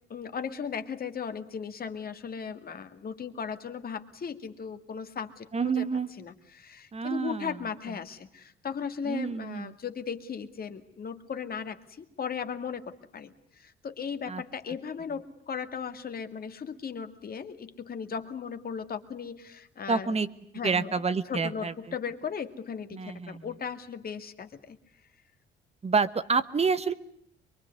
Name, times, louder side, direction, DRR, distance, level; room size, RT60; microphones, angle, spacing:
voice 1, 0.1-5.8 6.2-20.2 20.5-20.9 21.3-24.8, left 6 dB, 50° left, 8 dB, 2.2 m, -37 dB
voice 2, 5.5-6.1 6.9-7.6 9.0-9.7 14.3-14.4 19.9-20.3 20.6-21.7 22.9-23.5 25.8-26.9, right 5 dB, 30° right, 14 dB, 1.3 m, -28 dB
23.5 x 23.5 x 9.6 m, 0.70 s
cardioid pair, 90°, 20 cm